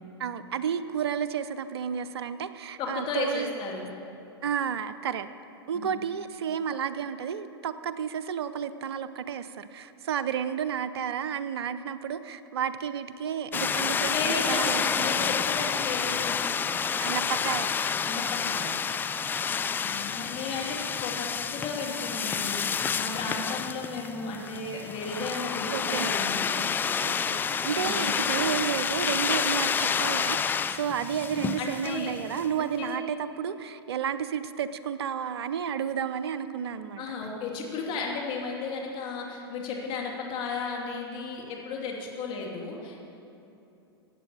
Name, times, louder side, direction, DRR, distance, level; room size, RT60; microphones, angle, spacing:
voice 1, 0.2-3.5 4.4-5.3 5.7-15.4 17.0-17.9 25.3-25.4 25.7-26.1 27.0-37.1, right 8 dB, 70° right, 12 dB, 0.7 m, -32 dB
voice 2, 2.8-3.9 5.7-5.9 14.1-16.5 18.1-18.8 19.5-26.5 27.8-28.1 31.6-32.1 32.6-33.0 37.0-43.0, left 4 dB, 35° left, -1 dB, 2.5 m, -34 dB
sound 1, 13.5-32.5, left 6 dB, 15° left, 0.4 m, -29 dB
15.5 x 8.9 x 6.9 m, 2.9 s
hypercardioid pair, 105°, 14 cm